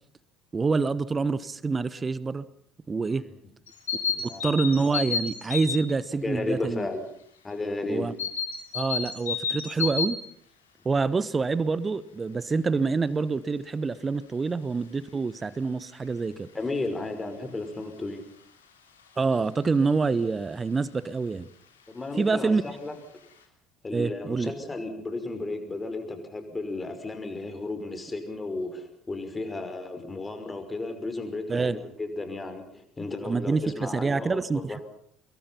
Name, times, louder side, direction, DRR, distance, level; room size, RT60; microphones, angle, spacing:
voice 1, 0.5-2.4 2.9-3.2 4.4-6.9 7.9-8.1 8.7-10.2 10.8-16.5 19.2-21.5 22.2-22.6 23.9-24.5 31.5-31.8 33.2-34.8, right 4 dB, 25° right, 18 dB, 1.1 m, -26 dB
sound 1, 3.7-5.9 8.2-10.2, left 6 dB, 80° left, 3.4 m, -30 dB
voice 2, 4.1-4.5 6.2-7.0 7.4-8.1 16.5-18.2 21.9-23.0 23.8-34.8, left 2 dB, 20° left, 7 dB, 5.6 m, -34 dB
26.0 x 22.5 x 5.7 m, 0.66 s
figure-of-eight pair, 60°, 0 cm